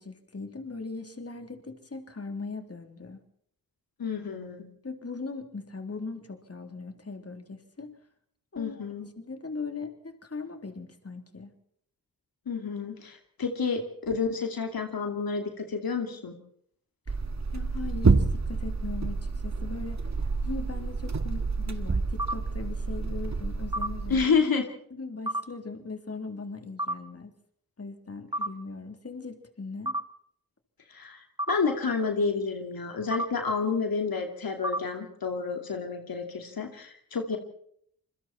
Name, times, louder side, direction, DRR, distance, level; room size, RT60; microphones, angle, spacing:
voice 1, 0.0-3.2 4.8-7.9 8.5-8.8 9.2-11.5 17.1-17.2 17.5-20.0 20.4-24.2 24.9-27.3 27.8-30.0, left 4 dB, 45° left, 6 dB, 3.5 m, -39 dB
voice 2, 4.0-4.7 8.6-9.1 12.5-16.3 24.1-24.7 30.9-37.4, left 5 dB, 80° left, 5 dB, 2.6 m, -29 dB
sound 1, 17.1-24.3, right 4 dB, 50° right, 2.2 m, -28 dB
sound 2, 22.2-22.3 23.7-23.9 25.3-25.4 26.8-26.9 28.3-28.5 29.8-30.0 31.4-31.5 33.1-33.2 34.6-34.8, right 1 dB, 10° right, 2.1 m, -28 dB
27.0 x 22.0 x 4.4 m, 0.67 s
cardioid pair, 45°, 35 cm